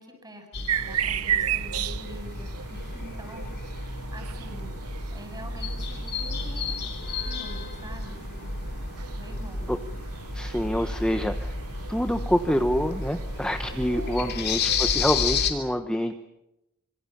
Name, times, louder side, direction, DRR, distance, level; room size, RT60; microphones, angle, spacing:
voice 1, 0.0-8.6 9.1-9.7, equal, 20° right, 5 dB, 7.3 m, -46 dB
sound 1, 0.5-15.5, left 4 dB, 50° left, 3.1 m, -32 dB
sound 2, 0.7-15.1, right 9 dB, 85° right, 0.9 m, -35 dB
voice 2, 10.3-11.5 11.9-16.1, equal, 5° left, 6 dB, 1.1 m, -26 dB
26.5 x 24.5 x 7.2 m, 0.89 s
head